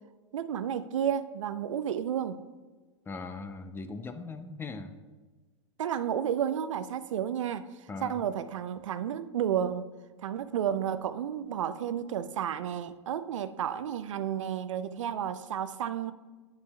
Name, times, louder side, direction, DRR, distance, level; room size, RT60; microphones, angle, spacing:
voice 1, 0.3-2.4 5.8-7.6 8.0-9.8 10.2-16.1, right 9 dB, 80° right, 13 dB, 0.4 m, -31 dB
voice 2, 3.1-4.9 7.9-8.2, left 3 dB, 15° left, 9 dB, 0.4 m, -39 dB
9.0 x 6.8 x 2.2 m, 1.3 s
hypercardioid pair, 110°, 16 cm